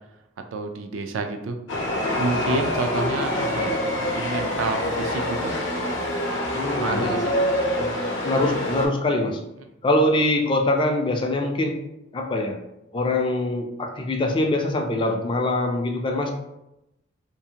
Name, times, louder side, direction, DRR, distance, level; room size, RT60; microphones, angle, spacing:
voice 1, 0.5-1.6 2.2-5.5 6.7-7.3, right 3 dB, 85° right, 6 dB, 0.4 m, -29 dB
Chatter / Subway metro underground, 1.7-8.9, left 1 dB, 70° left, 0.6 m, -25 dB
voice 2, 6.5-7.1 7.7-8.0 8.2-9.4 9.8-11.8 12.1-12.6 12.9-16.3, left 1 dB, 25° left, 3 dB, 0.3 m, -23 dB
2.6 x 2.4 x 2.7 m, 0.89 s
head